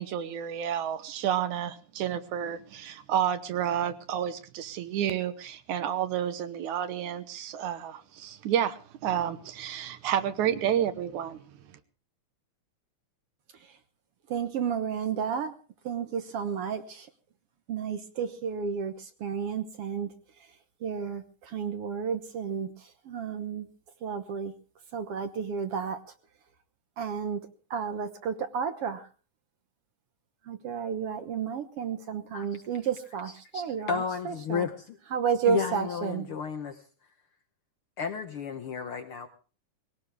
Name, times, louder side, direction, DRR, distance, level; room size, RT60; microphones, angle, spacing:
voice 1, 0.0-11.4, right 10 dB, 75° right, 11 dB, 2.5 m, -30 dB
voice 2, 14.3-15.5 15.8-17.1 17.7-20.1 20.8-23.7 24.0-24.5 24.9-26.0 27.0-29.1 30.5-34.7 35.1-36.3, right 7 dB, 60° right, 8 dB, 1.7 m, -32 dB
voice 3, 33.5-35.0 35.5-36.8 38.0-39.3, left 6 dB, 65° left, 6 dB, 1.4 m, -33 dB
21.0 x 17.5 x 3.4 m, 0.36 s
omnidirectional pair, 3.5 m